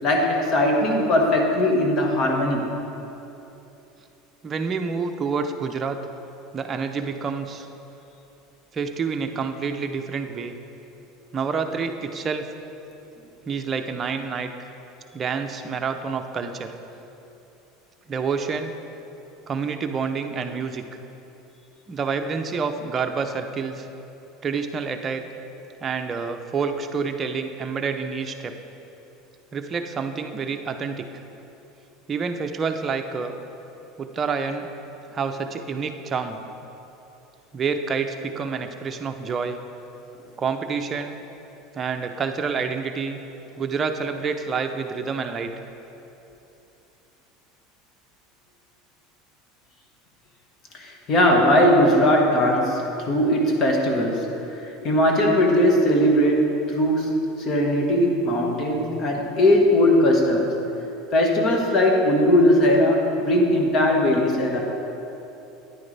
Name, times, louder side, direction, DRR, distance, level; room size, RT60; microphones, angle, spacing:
voice 1, 0.0-2.7 50.7-60.5 61.1-64.6, left 1 dB, 45° left, 0 dB, 1.6 m, -19 dB
voice 2, 4.4-6.0 6.5-7.7 8.7-10.5 11.3-12.5 13.4-14.7 15.1-16.7 18.1-18.7 19.5-20.8 21.9-23.9 24.4-25.3 25.8-28.6 29.5-31.1 32.1-33.4 34.0-34.7 35.1-36.4 37.5-39.6 40.4-41.1 41.7-43.2 43.6-45.5, right 5 dB, 30° right, 5 dB, 0.6 m, -28 dB
9.9 x 9.3 x 3.4 m, 3.0 s
supercardioid pair, 110°, 0 cm